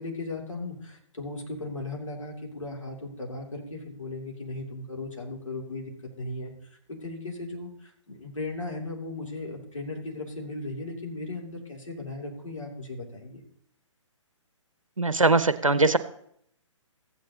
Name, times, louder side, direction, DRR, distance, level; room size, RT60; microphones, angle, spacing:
voice 1, 0.0-13.4, left 2 dB, 75° left, -1 dB, 2.7 m, -37 dB
voice 2, 15.0-16.0, right 3 dB, 90° right, 12 dB, 0.6 m, -21 dB
14.5 x 9.2 x 2.8 m, 0.69 s
figure-of-eight pair, 130°, 16 cm